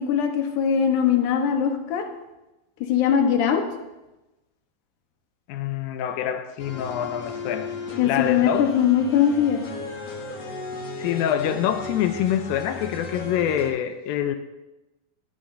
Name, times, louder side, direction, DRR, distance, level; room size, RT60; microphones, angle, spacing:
voice 1, 0.0-2.0 2.8-3.6 8.0-9.6, left 8 dB, 70° left, 4 dB, 2.3 m, -21 dB
voice 2, 5.5-7.7 8.0-8.7 11.0-14.4, left 10 dB, 85° left, 8 dB, 2.4 m, -26 dB
sound 1, 6.6-13.7, left 3 dB, 50° left, 2.3 m, -35 dB
16.0 x 10.5 x 2.6 m, 1.0 s
omnidirectional pair, 4.1 m